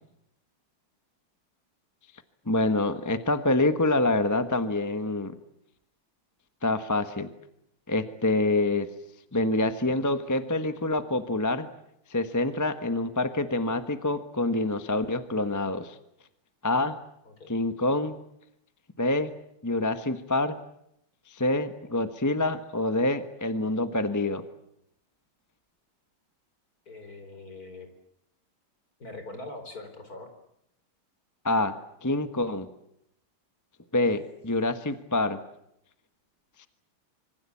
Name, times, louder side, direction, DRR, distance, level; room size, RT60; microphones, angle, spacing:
voice 1, 2.5-5.3 6.6-7.3 7.9-8.9 9.3-11.7 12.1-16.0 16.6-17.0 17.5-18.2 19.0-19.3 19.6-20.6 21.3-24.4 31.4-31.7 32.0-32.7 33.9-35.4 36.6-36.7, left 2 dB, 10° left, 9 dB, 0.9 m, -26 dB
voice 2, 26.9-27.9 29.0-30.3, left 2 dB, 45° left, 7 dB, 4.7 m, -42 dB
26.5 x 24.5 x 8.5 m, 0.78 s
omnidirectional pair, 2.3 m